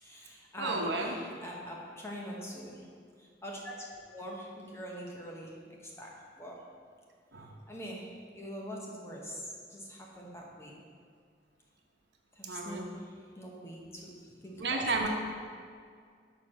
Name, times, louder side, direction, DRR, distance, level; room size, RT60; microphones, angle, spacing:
voice 1, 0.0-2.9 3.2-6.7 7.7-10.8 12.4-14.9, equal, 15° left, -2 dB, 1.0 m, -44 dB
voice 2, 0.6-1.2 7.3-7.6 12.4-12.9 14.6-15.1, right 3 dB, 75° right, 1 dB, 1.0 m, -32 dB
6.6 x 4.6 x 6.3 m, 2.1 s
head